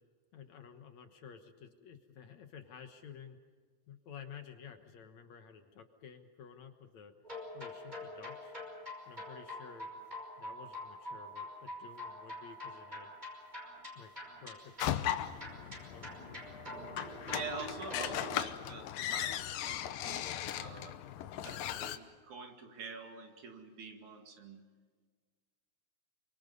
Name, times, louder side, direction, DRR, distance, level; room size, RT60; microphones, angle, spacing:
voice 1, 0.3-3.4 3.9-7.1 7.5-8.5 9.1-10.1 10.4-13.1 14.0-14.1 14.4-16.1, left 7 dB, 60° left, 6 dB, 2.3 m, -52 dB
sound 1, 7.2-18.4, left 1 dB, 10° right, 5.4 m, -46 dB
sound 2, 14.8-22.0, left 11 dB, 80° left, 2.6 m, -38 dB
voice 2, 17.2-21.0 21.3-24.6, right 4 dB, 60° right, 4 dB, 3.5 m, -46 dB
27.5 x 25.0 x 5.4 m, 1.5 s
omnidirectional pair, 4.0 m